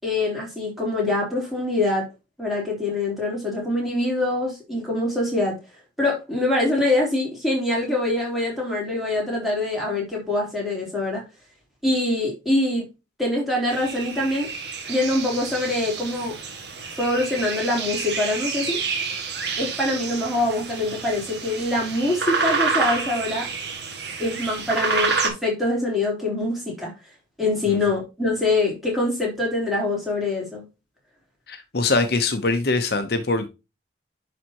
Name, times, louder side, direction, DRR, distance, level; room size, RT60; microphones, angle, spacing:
voice 1, 0.0-2.1 2.4-5.6 6.0-11.2 11.8-12.9 13.2-14.5 14.9-16.4 17.0-18.8 19.6-23.5 24.2-26.9 27.4-30.6, left 2 dB, ahead, 3.7 m, -24 dB
sound 1, 13.7-25.3, right 4 dB, 65° right, 1.9 m, -29 dB
voice 2, 31.5-33.5, left 3 dB, 60° left, 0.8 m, -23 dB
10.5 x 4.2 x 2.9 m
head